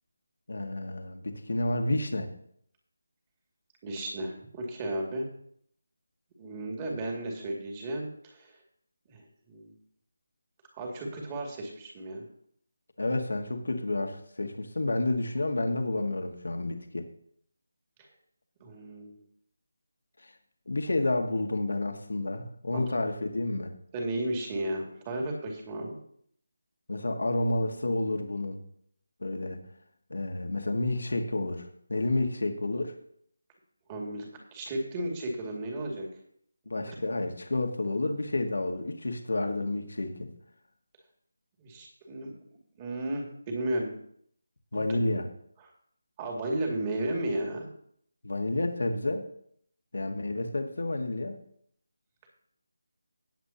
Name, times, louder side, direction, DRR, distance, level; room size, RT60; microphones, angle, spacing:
voice 1, 0.5-2.3 13.0-17.1 20.2-20.3 20.7-23.7 26.9-28.6 29.2-29.6 30.1-33.0 36.7-40.3 44.7-45.3 48.2-49.3 49.9-51.4, left 2 dB, 70° left, 4 dB, 1.7 m, -30 dB
voice 2, 3.8-5.3 6.4-8.6 9.1-9.7 10.7-12.2 18.6-19.2 22.7-22.8 23.9-26.0 33.9-34.3 34.5-36.1 36.9-37.0 41.6-42.3 42.8-43.9 44.7-44.8 45.1-45.2 46.2-47.7, right 1 dB, 20° right, 0 dB, 2.4 m, -34 dB
18.5 x 7.9 x 2.9 m, 0.67 s
figure-of-eight pair, 160°, 0 cm